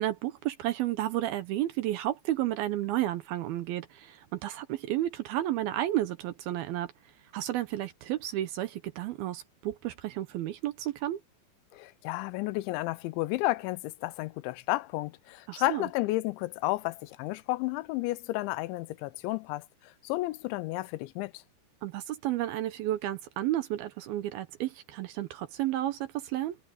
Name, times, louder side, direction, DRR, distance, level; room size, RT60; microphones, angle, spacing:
voice 1, 0.0-6.9 7.3-11.2 15.5-15.9 21.8-26.6, right 14 dB, 75° right, 2.3 m, -32 dB
voice 2, 11.7-21.4, left 18 dB, 90° left, 3.1 m, -32 dB
omnidirectional pair, 5.2 m